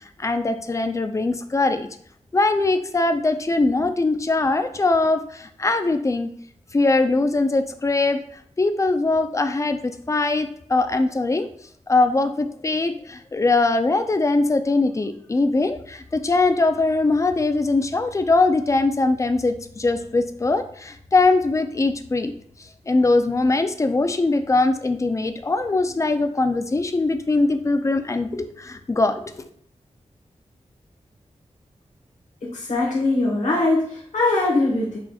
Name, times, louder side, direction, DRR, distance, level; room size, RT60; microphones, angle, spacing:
voice 1, 0.2-1.9 2.3-6.3 6.7-8.2 8.6-11.5 11.9-22.3 22.9-29.5, left 3 dB, 25° left, 8 dB, 0.3 m, -21 dB
voice 2, 32.4-35.0, left 2 dB, 90° left, -4 dB, 1.1 m, -21 dB
6.0 x 2.8 x 2.3 m, 0.62 s
wide cardioid pair, 120°, 12 cm